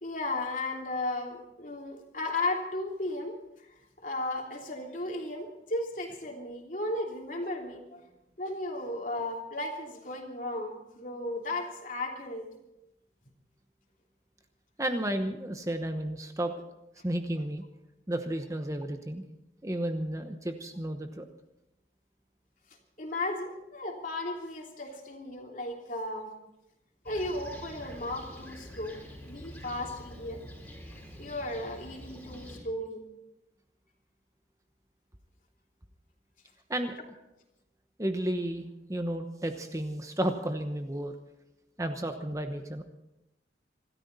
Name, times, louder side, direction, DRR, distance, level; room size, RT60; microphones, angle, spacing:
voice 1, 0.0-3.4 4.0-8.0 8.4-12.5 23.0-26.3 27.0-30.4 31.2-33.0, left 2 dB, 45° left, 1 dB, 3.1 m, -35 dB
voice 2, 14.8-16.5 17.0-17.6 18.1-19.2 19.6-21.3 36.7-36.9 38.0-41.1 41.8-42.8, right 1 dB, 15° right, 6 dB, 1.0 m, -32 dB
Fixed-wing aircraft airplane, 27.0-32.6, equal, 10° left, 4.2 m, -46 dB
26.0 x 13.5 x 4.1 m, 0.91 s
head